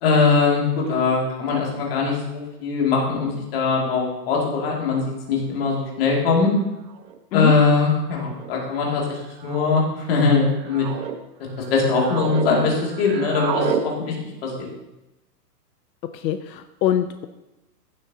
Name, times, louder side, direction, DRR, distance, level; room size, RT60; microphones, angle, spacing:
voice 1, 0.0-6.5 7.3-10.9 11.7-14.1 14.4-14.7, left 4 dB, 35° left, -2 dB, 2.4 m, -21 dB
sound 1, 5.8-5.9 6.9-7.2 8.1-8.5 9.4-9.8 10.4-11.2 11.6-12.5 12.8-13.8, right 7 dB, 85° right, 1.2 m, -30 dB
voice 2, 16.1-17.3, left 11 dB, 85° left, 9 dB, 0.7 m, -23 dB
15.0 x 7.6 x 2.8 m, 0.98 s
hypercardioid pair, 180°, 50 cm